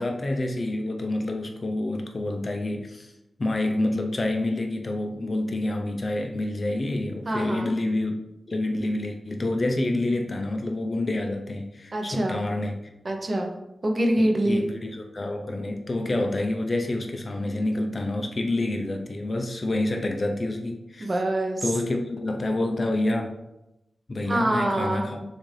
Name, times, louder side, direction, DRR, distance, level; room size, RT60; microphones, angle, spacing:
voice 1, 0.0-3.1 3.4-8.2 8.5-12.8 14.2-21.1 21.6-23.4 24.1-25.2, left 2 dB, 35° left, 3 dB, 0.5 m, -28 dB
voice 2, 7.3-7.7 11.9-12.4 13.0-13.5 13.8-14.6 21.0-21.6 24.3-25.1, right 1 dB, 40° right, 2 dB, 0.7 m, -25 dB
6.3 x 2.6 x 3.2 m, 0.92 s
wide cardioid pair, 105°, 0 cm